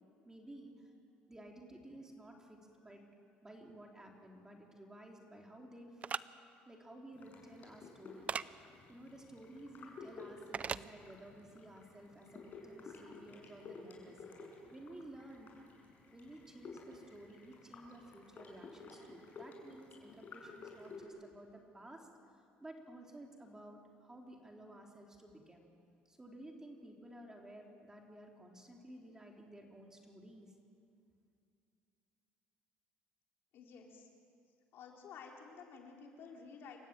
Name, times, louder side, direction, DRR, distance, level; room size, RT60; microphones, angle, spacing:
voice 1, 0.2-0.9 1.3-3.0 3.4-6.0 6.6-8.3 8.9-14.2 14.7-15.5 16.1-22.1 22.6-25.7 26.1-30.5, right 1 dB, 15° right, 1 dB, 3.5 m, -54 dB
sound 1, 6.0-6.2 8.3-8.5 10.5-10.8, right 6 dB, 35° right, 0.5 m, -37 dB
sound 2, 7.1-21.1, left 4 dB, 45° left, 5.9 m, -54 dB
voice 2, 33.5-34.1 34.7-36.8, left 5 dB, 65° left, 0 dB, 3.9 m, -52 dB
28.0 x 15.0 x 9.0 m, 2.4 s
cardioid pair, 105°, 4 cm